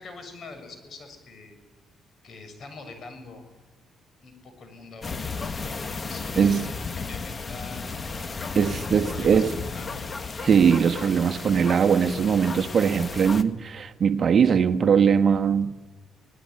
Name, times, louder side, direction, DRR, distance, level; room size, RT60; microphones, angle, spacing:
voice 1, 0.0-1.6 2.2-3.4 4.2-5.3 6.0-8.0 8.9-10.1, left 3 dB, 55° left, 7.1 m, -44 dB
sound 1, 5.0-13.4, left 4 dB, 35° left, 1.7 m, -34 dB
voice 2, 6.4-6.7 8.5-9.5 10.4-15.8, right 7 dB, 50° right, 1.4 m, -21 dB
27.5 x 19.5 x 9.6 m
cardioid pair, 90°, 0 cm